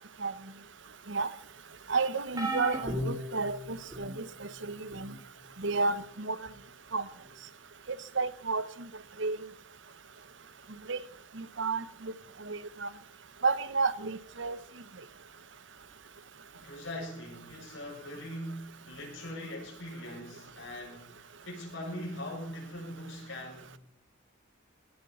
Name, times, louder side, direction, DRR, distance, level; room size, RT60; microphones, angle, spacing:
voice 1, 1.9-5.1 5.6-6.4 6.9-7.0 8.2-8.6 9.2-9.4 10.9-11.0 11.4-12.1 12.5-12.9 13.4-14.6, right 4 dB, 70° right, 15 dB, 1.0 m, -31 dB
sound 1, 2.4-4.2 4.9-5.2 6.5-6.6, right 1 dB, 20° right, 3.2 m, -35 dB
voice 2, 16.5-23.8, left 1 dB, 75° left, -1 dB, 7.4 m, -41 dB
18.0 x 8.9 x 5.7 m, 0.68 s
head